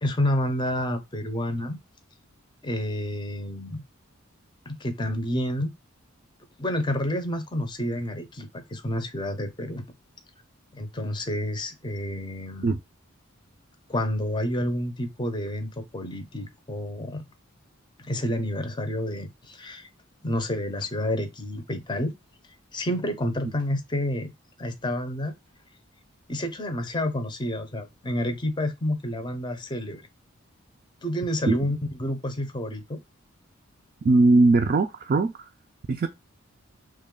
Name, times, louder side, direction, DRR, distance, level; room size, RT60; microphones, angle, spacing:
voice 1, 0.0-1.8 2.6-3.8 4.7-5.7 6.6-9.8 10.7-12.8 13.9-17.2 18.0-19.9 20.2-22.1 22.7-24.3 24.6-25.3 26.3-30.0 31.0-33.0, left 1 dB, 20° left, 0.6 m, -29 dB
voice 2, 34.0-35.5 35.9-36.1, right 3 dB, 40° right, 0.3 m, -20 dB
3.1 x 2.3 x 3.6 m
head